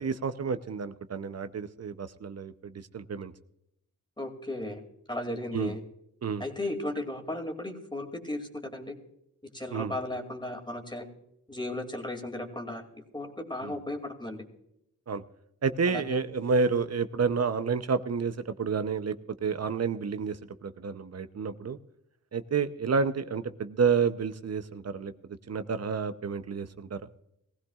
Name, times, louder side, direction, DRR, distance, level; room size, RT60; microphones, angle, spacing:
voice 1, 0.0-3.3 5.5-5.7 6.2-6.4 9.7-9.9 13.6-13.7 15.1-15.2 15.6-19.1 19.4-20.4 20.6-21.8 22.3-25.1 25.5-27.0, right 5 dB, 50° right, 11 dB, 0.7 m, -29 dB
voice 2, 4.2-4.8 5.1-5.8 6.4-9.0 9.5-11.1 11.5-12.8 13.1-14.4 15.9-16.2, left 1 dB, 15° left, 3 dB, 2.5 m, -35 dB
19.0 x 16.0 x 2.4 m, 0.81 s
cardioid pair, 70°, 32 cm